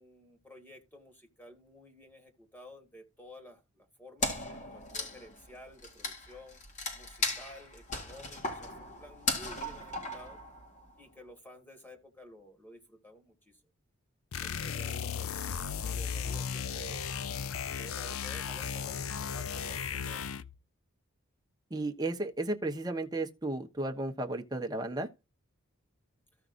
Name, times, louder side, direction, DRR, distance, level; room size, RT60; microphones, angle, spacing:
voice 1, 0.0-6.6 6.9-10.4 11.0-13.6 14.4-17.2 17.7-20.3, left 1 dB, 10° left, 1.9 m, -53 dB
Wood, 4.2-10.9, left 2 dB, 35° left, 2.0 m, -37 dB
sound 1, 14.3-20.6, left 7 dB, 80° left, 0.5 m, -36 dB
voice 2, 21.7-25.1, right 2 dB, 20° right, 1.1 m, -34 dB
15.0 x 5.8 x 2.6 m
head